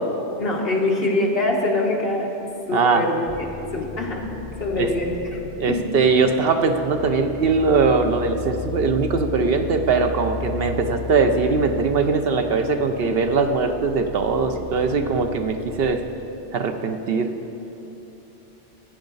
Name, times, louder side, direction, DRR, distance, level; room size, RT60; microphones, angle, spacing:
voice 1, 0.4-2.3 2.7-4.3 4.6-5.4 5.7-5.8, left 2 dB, 55° left, -1 dB, 1.5 m, -24 dB
sound 1, 3.3-15.8, left 4 dB, 5° right, 1.0 m, -35 dB
voice 2, 5.6-16.0 16.5-17.3, right 4 dB, 60° right, 6 dB, 0.8 m, -21 dB
14.5 x 9.9 x 4.0 m, 3.0 s
omnidirectional pair, 1.2 m